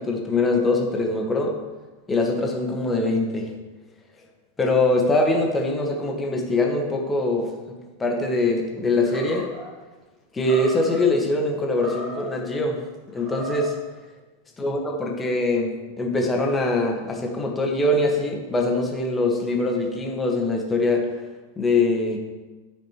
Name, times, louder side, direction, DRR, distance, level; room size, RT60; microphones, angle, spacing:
voice 1, 0.0-1.5 2.1-3.5 4.6-9.5 10.3-12.8 13.1-13.7 14.6-22.2, left 2 dB, 15° left, 1 dB, 1.4 m, -23 dB
Animal, 9.0-9.7 10.4-11.1 11.7-12.4 13.1-13.8, right 1 dB, 30° right, 2.0 m, -36 dB
13.0 x 5.1 x 3.1 m, 1.2 s
figure-of-eight pair, 90°, 0 cm